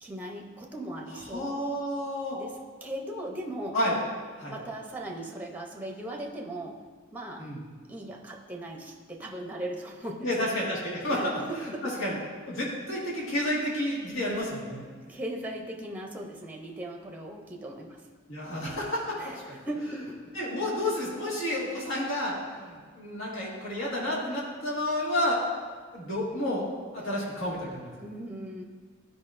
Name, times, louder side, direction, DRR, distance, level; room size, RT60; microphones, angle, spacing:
voice 1, 0.0-1.7 2.3-3.8 4.5-6.8 7.1-7.5 7.9-10.3 10.6-10.7 11.1-11.9 15.1-18.0 19.2-20.2 28.0-28.6, right 1 dB, 10° right, 1 dB, 0.6 m, -38 dB
voice 2, 1.3-2.4 3.7-4.0 4.4-4.5 7.4-7.6 10.2-11.4 12.0-12.2 12.5-14.8 18.3-19.6 20.3-25.4 25.9-26.7 26.9-27.9, left 1 dB, 85° left, -5 dB, 1.7 m, -30 dB
11.5 x 5.0 x 2.5 m, 1.6 s
head